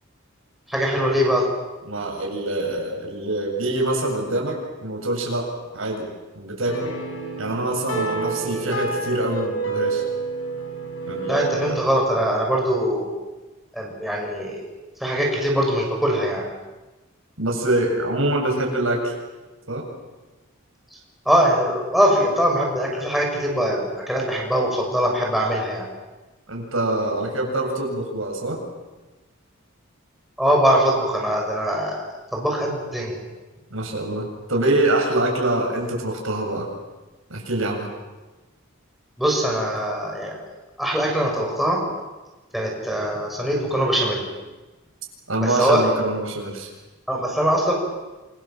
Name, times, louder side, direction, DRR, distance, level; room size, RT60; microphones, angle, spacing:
voice 1, 0.7-1.5 11.3-13.1 13.7-14.6 15.0-16.5 21.2-25.9 30.4-32.0 32.3-33.2 39.2-40.3 40.8-41.8 42.5-44.3 45.4-45.8 47.1-47.7, equal, ahead, -2 dB, 6.7 m, -22 dB
voice 2, 1.9-5.5 5.7-6.9 7.4-10.0 11.1-11.4 17.4-19.1 19.7-19.9 26.5-28.6 33.7-36.7 37.3-37.9 45.3-46.7, right 1 dB, 75° right, 1 dB, 7.9 m, -25 dB
sound 1, 6.7-11.7, right 3 dB, 70° left, 7.3 m, -28 dB
29.5 x 25.0 x 7.8 m, 1.1 s
head